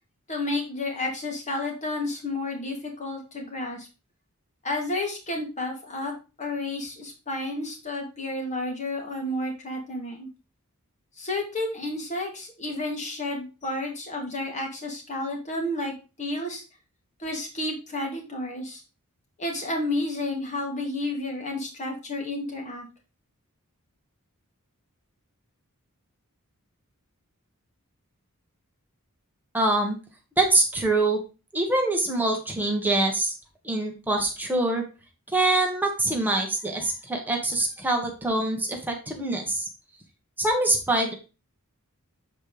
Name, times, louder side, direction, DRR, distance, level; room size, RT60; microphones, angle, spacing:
voice 1, 0.3-3.9 4.6-10.3 11.2-16.6 17.2-18.8 19.4-22.9, left 2 dB, 35° left, 1 dB, 2.3 m, -31 dB
voice 2, 29.5-30.0 30.4-31.2 31.5-33.3 33.6-34.8 35.3-39.7 40.4-41.1, right 2 dB, 10° right, 1 dB, 1.5 m, -24 dB
7.7 x 4.3 x 5.0 m, 0.30 s
head